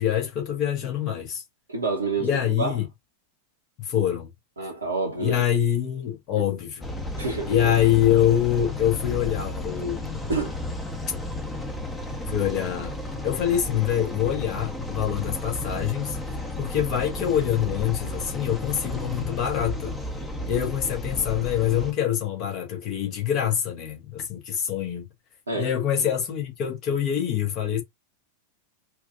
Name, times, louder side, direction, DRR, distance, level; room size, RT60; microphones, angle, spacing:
voice 1, 0.0-1.4 2.2-2.9 3.8-4.3 5.2-6.9 7.5-10.2 12.3-12.9 13.2-16.2 16.6-19.9 20.5-25.1 25.5-27.8, left 10 dB, 40° left, 1.6 m, -25 dB
voice 2, 1.7-2.8 4.6-5.4 7.2-7.7 10.3-10.6 25.5-25.7, right 3 dB, 75° right, 1.1 m, -28 dB
sound 1, 6.8-21.9, left 1 dB, 15° left, 1.1 m, -33 dB
4.5 x 2.6 x 2.5 m
figure-of-eight pair, 90°, 0 cm